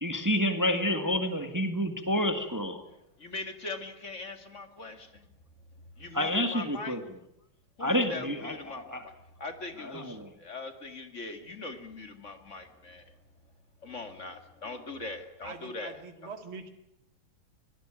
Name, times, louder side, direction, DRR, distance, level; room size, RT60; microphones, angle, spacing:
voice 1, 0.0-2.8 6.1-7.2 7.8-9.1 9.8-10.3, equal, 10° right, 7 dB, 1.8 m, -29 dB
voice 2, 3.2-5.2 6.0-7.0 7.8-9.1 9.4-13.0 13.8-16.0, left 3 dB, 35° left, 7 dB, 2.4 m, -41 dB
voice 3, 15.0-16.7, right 5 dB, 85° right, 6 dB, 2.9 m, -45 dB
24.0 x 18.0 x 9.0 m, 0.80 s
omnidirectional pair, 2.2 m